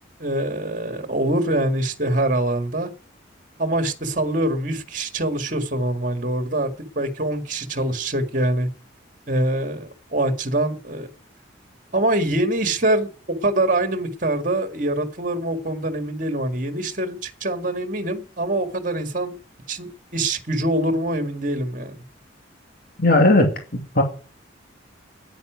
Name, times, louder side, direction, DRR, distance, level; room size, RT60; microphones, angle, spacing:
voice 1, 0.2-2.9 3.6-8.7 9.3-11.1 11.9-13.1 13.4-19.3 19.7-22.0, right 1 dB, 40° right, 2.0 m, -24 dB
voice 2, 23.0-24.0, left 2 dB, 50° left, 2.6 m, -17 dB
10.0 x 9.9 x 9.2 m
head